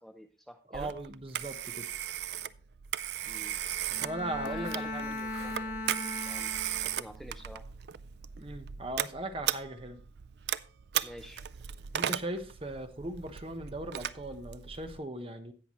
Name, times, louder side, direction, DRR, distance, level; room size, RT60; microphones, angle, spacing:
voice 1, 0.0-0.9 3.2-3.6 4.4-6.6 6.9-7.6 11.0-11.4, equal, ahead, 7 dB, 0.5 m, -49 dB
voice 2, 0.7-1.9 4.0-5.2 8.4-10.0 11.9-15.5, right 1 dB, 30° right, 8 dB, 1.0 m, -38 dB
Telephone, 0.7-15.0, right 10 dB, 65° right, 0.4 m, -37 dB
Bowed string instrument, 3.9-7.1, left 2 dB, 65° left, 2.0 m, -38 dB
16.5 x 5.9 x 3.1 m, 0.38 s
head